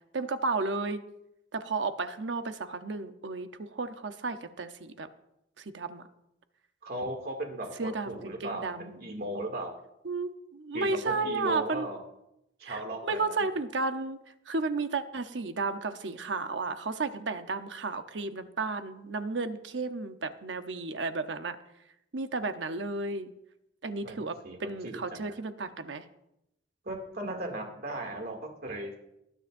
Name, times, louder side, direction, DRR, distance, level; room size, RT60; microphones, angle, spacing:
voice 1, 0.1-1.0 1.5-5.1 5.6-6.1 7.8-9.0 10.0-11.9 12.6-14.2 14.5-21.6 22.1-23.3 23.8-26.0, right 3 dB, 75° right, 9 dB, 0.8 m, -33 dB
voice 2, 6.8-7.7 8.0-9.7 10.7-12.0 12.6-13.4 24.0-24.2 24.4-24.6 24.8-25.2 26.9-28.4 28.6-28.9, right 1 dB, 55° right, 2 dB, 2.4 m, -36 dB
19.5 x 10.0 x 2.6 m, 0.83 s
head